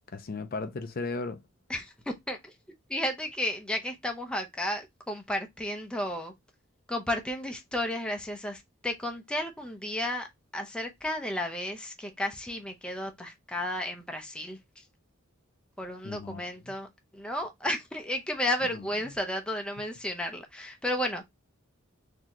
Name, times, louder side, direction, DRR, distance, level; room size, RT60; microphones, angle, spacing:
voice 1, 0.1-1.4 16.0-16.7 18.7-18.9, left 3 dB, 45° left, 0.5 m, -36 dB
voice 2, 1.7-2.5 2.9-6.3 6.9-10.3 10.5-14.6 15.8-16.9 17.1-21.3, left 1 dB, 5° left, 0.6 m, -33 dB
4.0 x 2.8 x 3.0 m
head